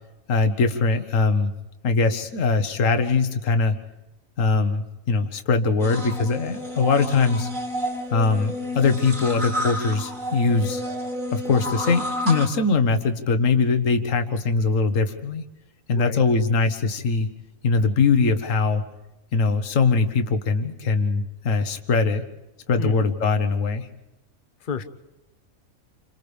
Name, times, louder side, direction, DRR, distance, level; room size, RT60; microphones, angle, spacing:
voice 1, 0.3-1.5 1.8-3.7 4.4-7.5 8.1-10.8 11.3-15.4 15.9-17.3 17.6-18.8 19.3-22.2 22.7-23.9, left 4 dB, 70° left, 8 dB, 1.6 m, -21 dB
sound 1, 5.8-12.5, equal, 35° right, 2.5 m, -30 dB
voice 2, 22.8-23.1 24.6-24.8, left 6 dB, 40° left, 9 dB, 1.0 m, -31 dB
29.5 x 26.5 x 3.4 m, 1.0 s
omnidirectional pair, 1.4 m